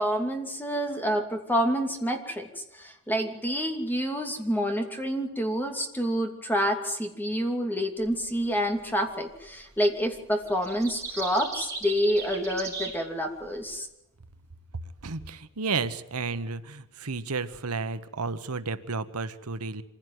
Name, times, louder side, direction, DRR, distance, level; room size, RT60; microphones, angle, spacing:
voice 1, 0.0-13.9, equal, 10° left, 4 dB, 2.8 m, -28 dB
sound 1, 8.0-8.3 9.4-9.8 10.1-13.7, right 4 dB, 15° right, 6.9 m, -37 dB
voice 2, 15.0-19.8, right 4 dB, 85° right, 12 dB, 1.2 m, -32 dB
25.5 x 16.0 x 9.5 m, 0.85 s
head